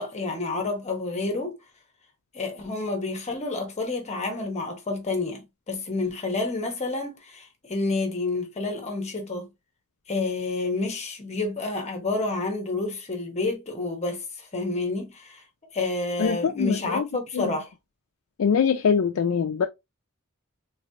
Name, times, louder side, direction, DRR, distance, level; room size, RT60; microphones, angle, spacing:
voice 1, 0.0-1.6 2.3-9.5 10.1-15.4 15.7-17.7, left 3 dB, 30° left, 1.0 m, -29 dB
voice 2, 16.2-17.1 17.3-17.5 18.4-19.7, left 6 dB, 75° left, 0.4 m, -23 dB
3.3 x 3.1 x 2.7 m
head